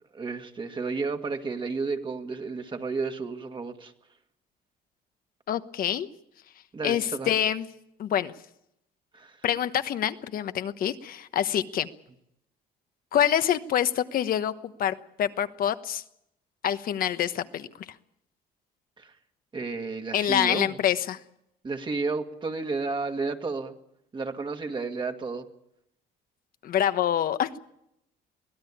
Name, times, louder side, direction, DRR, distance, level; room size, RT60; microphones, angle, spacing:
voice 1, 0.1-3.9 6.7-7.3 9.1-9.4 19.0-19.1 19.5-20.8 21.6-23.7 24.1-25.5, right 4 dB, 30° right, 5 dB, 1.9 m, -32 dB
voice 2, 5.5-6.1 6.8-7.7 8.0-8.3 9.4-11.9 13.1-16.0 16.6-17.7 20.1-21.2 26.6-27.6, left 10 dB, 60° left, 11 dB, 1.1 m, -26 dB
23.5 x 16.0 x 8.7 m, 0.81 s
cardioid pair, 110°, 17 cm